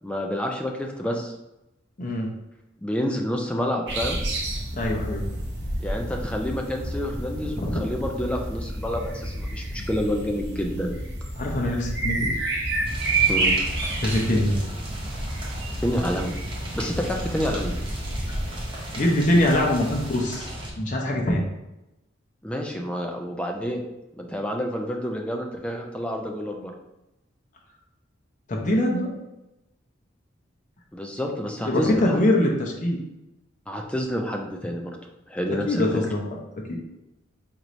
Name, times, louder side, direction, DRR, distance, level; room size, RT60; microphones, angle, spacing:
voice 1, 0.0-1.3 2.8-4.2 5.8-11.0 13.3-13.5 15.8-16.3 16.7-17.8 22.4-23.8 24.2-26.7 30.9-32.2 33.7-34.9 35.3-35.8, equal, 5° left, 1 dB, 0.4 m, -28 dB
voice 2, 2.0-2.3 4.7-5.2 7.5-7.8 11.4-12.3 14.0-14.6 18.9-20.5 20.8-21.4 28.5-29.1 31.7-33.0 35.7-36.2 36.6-36.8, left 1 dB, 40° left, 0 dB, 0.7 m, -23 dB
sound 1, 3.9-20.2, right 2 dB, 65° right, 0.8 m, -30 dB
sound 2, 12.8-20.7, right 1 dB, 25° right, 0.8 m, -36 dB
4.5 x 3.1 x 2.6 m, 0.94 s
head